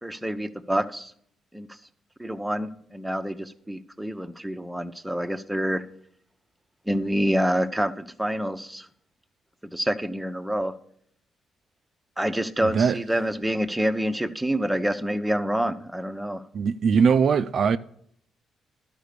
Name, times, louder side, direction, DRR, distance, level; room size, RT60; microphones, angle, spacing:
voice 1, 0.0-1.1 1.5-1.7 2.2-5.8 6.9-8.9 9.7-10.7 12.2-16.4, equal, 5° right, 0.8 m, -27 dB
voice 2, 12.6-13.0 16.5-17.8, right 6 dB, 55° right, 0.4 m, -21 dB
12.0 x 5.1 x 6.6 m
cardioid pair, 90°, 0 cm